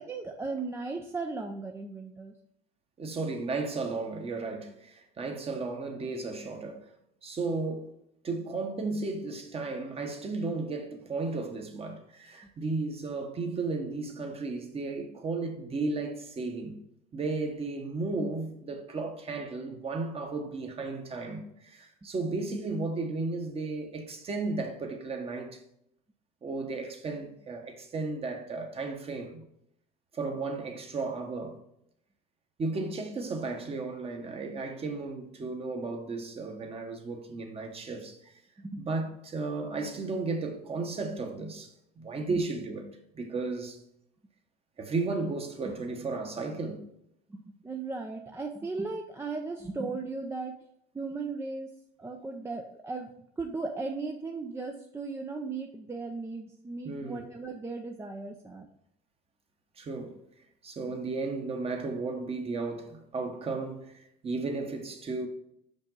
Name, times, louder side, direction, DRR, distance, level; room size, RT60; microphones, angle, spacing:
voice 1, 0.0-2.3 38.6-38.8 42.3-42.4 45.6-45.7 47.3-50.5 50.9-51.7 52.0-58.7, right 3 dB, 10° right, 0.5 m, -36 dB
voice 2, 3.0-6.9 7.2-7.9 8.2-16.8 17.1-25.6 26.4-29.4 30.1-31.6 32.6-38.3 38.8-42.8 43.1-43.8 44.8-46.8 56.8-57.2 59.8-60.2 60.6-65.3, right 3 dB, 30° right, 1.2 m, -34 dB
6.0 x 5.3 x 3.9 m
cardioid pair, 120°, 20 cm